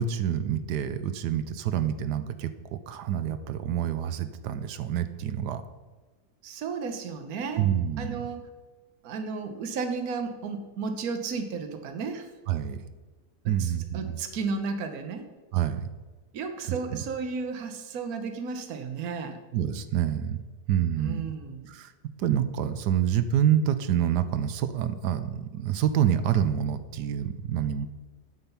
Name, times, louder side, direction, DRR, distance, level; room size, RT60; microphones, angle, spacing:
voice 1, 0.0-5.6 7.6-8.2 12.5-12.8 13.4-14.2 15.5-15.9 16.7-17.0 19.5-20.4 20.7-21.3 21.7-21.9 22.2-27.9, right 10 dB, 75° right, 12 dB, 1.2 m, -27 dB
voice 2, 6.4-7.7 8.0-8.5 9.0-12.3 13.4-15.3 16.3-19.4 20.9-21.7, right 5 dB, 60° right, 7 dB, 1.4 m, -33 dB
7.9 x 7.6 x 5.5 m, 1.3 s
omnidirectional pair, 1.8 m